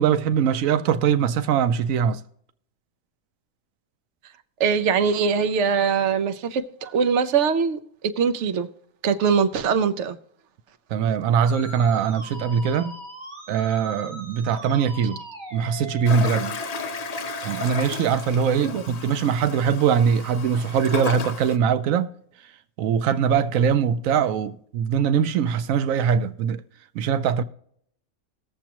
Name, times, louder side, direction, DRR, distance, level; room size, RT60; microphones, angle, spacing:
voice 1, 0.0-2.2 10.9-13.0 13.5-15.2 15.5-16.6 17.4-22.1 22.8-26.6 26.9-27.4, right 7 dB, 90° right, 1.0 m, -22 dB
voice 2, 4.6-7.8 8.2-8.7 9.0-10.2 18.6-18.8, right 6 dB, 65° right, 1.0 m, -22 dB
Musical instrument, 11.4-17.7, right 2 dB, 35° right, 2.3 m, -39 dB
Toilet flush, 16.1-21.6, left 6 dB, 50° left, 0.5 m, -34 dB
19.0 x 7.2 x 2.9 m
omnidirectional pair, 1.4 m